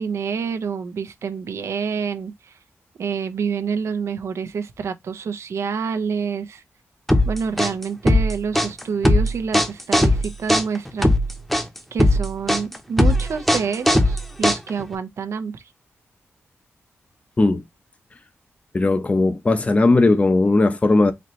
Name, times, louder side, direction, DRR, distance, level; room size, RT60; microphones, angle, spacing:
voice 1, 0.0-2.6 3.0-6.6 7.2-11.2 11.9-15.6, right 6 dB, 75° right, 0.7 m, -27 dB
sound 1, 7.1-14.9, left 1 dB, 5° left, 0.8 m, -18 dB
voice 2, 18.7-21.1, left 2 dB, 30° left, 0.7 m, -17 dB
4.2 x 2.8 x 3.0 m
wide cardioid pair, 100°, 5 cm